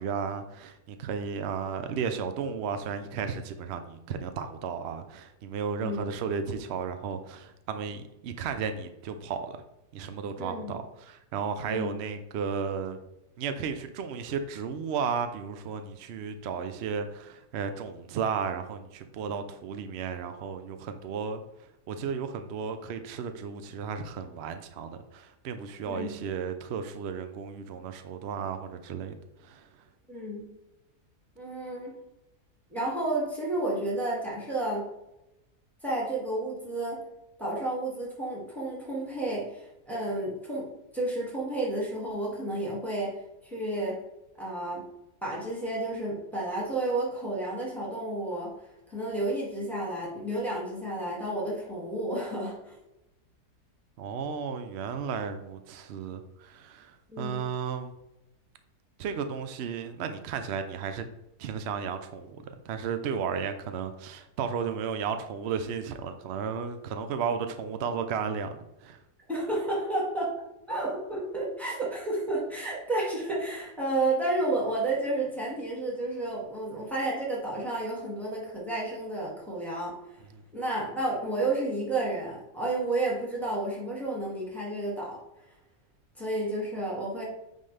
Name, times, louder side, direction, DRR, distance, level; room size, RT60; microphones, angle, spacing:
voice 1, 0.0-9.6 9.9-13.0 13.4-21.4 21.9-29.2 29.4-29.6 54.0-57.9 59.0-61.1 61.4-62.4 62.6-69.0, right 6 dB, 70° right, 8 dB, 0.6 m, -34 dB
voice 2, 10.4-10.7 11.6-11.9 25.8-26.1 30.1-30.5 31.4-31.9 32.7-34.8 35.8-37.0 37.4-43.1 43.4-44.0 44.4-44.8 45.2-48.5 48.9-52.7 57.1-57.4 69.3-70.3 70.7-80.2 80.5-85.2 86.2-87.2, right 2 dB, ahead, -5 dB, 2.0 m, -31 dB
9.2 x 3.7 x 3.3 m, 0.90 s
omnidirectional pair, 1.7 m